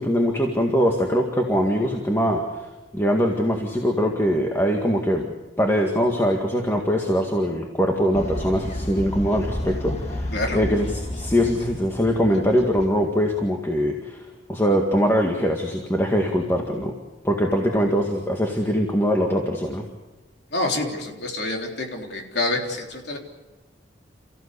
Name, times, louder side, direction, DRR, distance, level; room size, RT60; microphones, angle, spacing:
voice 1, 0.0-2.4 2.9-5.3 5.6-10.9 11.2-14.2 14.5-16.9 17.2-19.8, equal, 15° left, 1 dB, 1.9 m, -22 dB
Fowl, 8.1-13.4, left 1 dB, 35° left, 1.9 m, -31 dB
voice 2, 20.5-23.2, left 2 dB, 60° left, 1 dB, 3.6 m, -27 dB
29.5 x 15.5 x 8.4 m, 1.2 s
head